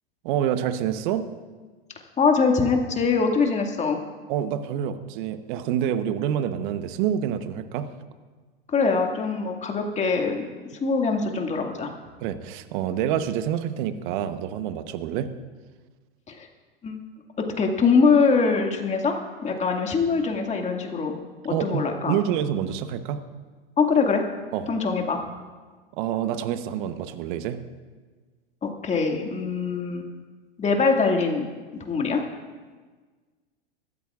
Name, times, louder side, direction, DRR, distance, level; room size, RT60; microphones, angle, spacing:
voice 1, 0.2-1.3 4.3-7.9 12.2-15.3 21.5-23.2 24.5-24.7 25.9-27.6, right 9 dB, 60° right, 10 dB, 1.0 m, -27 dB
voice 2, 2.2-4.0 8.7-10.5 10.8-11.9 16.3-16.5 16.8-17.0 17.4-21.2 21.4-22.2 23.8-24.2 24.7-25.2 28.6-30.1 30.6-32.2, left 4 dB, 25° left, 2 dB, 2.1 m, -23 dB
24.5 x 13.5 x 2.5 m, 1.4 s
hypercardioid pair, 100°, 29 cm